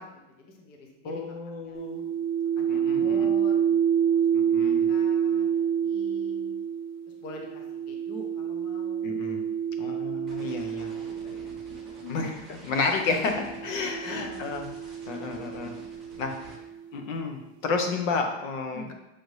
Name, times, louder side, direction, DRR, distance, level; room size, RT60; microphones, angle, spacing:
voice 1, 0.0-1.3 1.6-1.8 2.6-3.7 3.9-4.2 4.6-6.5 7.2-9.1 10.1-11.5 12.0-12.4 14.0-14.7 15.7-16.6 18.7-18.9, left 2 dB, 25° left, 1 dB, 0.4 m, -46 dB
voice 2, 1.0-2.0 2.7-3.3 4.3-4.9 9.0-9.4 9.8-10.9 12.1-14.7 15.1-15.7 16.2-16.4 16.9-18.9, left 4 dB, 75° left, 4 dB, 0.9 m, -31 dB
sound 1, 1.7-12.1 13.0-16.8, right 8 dB, 45° right, 0.7 m, -28 dB
sound 2, 10.3-16.6, right 2 dB, ahead, 0.8 m, -50 dB
6.1 x 2.7 x 3.1 m, 0.94 s
supercardioid pair, 160°, 38 cm